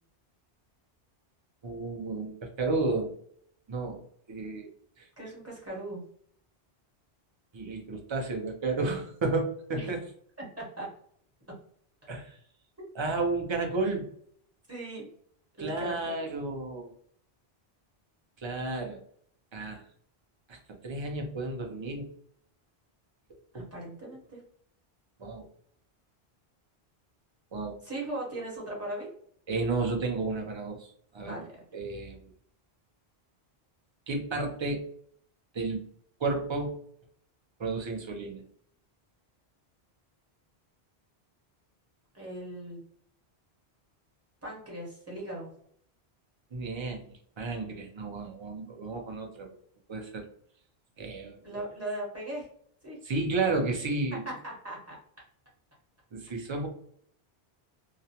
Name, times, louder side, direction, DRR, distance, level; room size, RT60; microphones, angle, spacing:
voice 1, 1.6-3.1 3.7-4.0 4.3-4.7 5.0-5.1 7.5-10.0 12.1-12.4 12.9-14.1 15.6-16.9 18.4-19.0 19.5-19.8 20.5-20.6 20.8-22.1 23.5-23.6 25.2-25.5 27.5-27.8 29.5-31.4 31.7-32.3 34.1-34.8 35.5-35.8 36.2-36.8 37.6-38.4 46.5-47.0 47.4-49.5 49.9-50.2 51.0-51.6 53.0-54.2 56.1-56.7, right 3 dB, 40° right, 2 dB, 0.4 m, -32 dB
voice 2, 5.2-6.0 9.7-9.9 10.4-10.9 14.7-15.0 15.6-16.1 23.5-24.4 27.8-29.1 31.2-31.6 42.1-42.8 44.4-45.5 51.4-52.4 52.8-53.0 54.2-55.0, right 1 dB, 15° right, -4 dB, 1.0 m, -38 dB
2.3 x 2.0 x 2.7 m, 0.63 s
omnidirectional pair, 1.1 m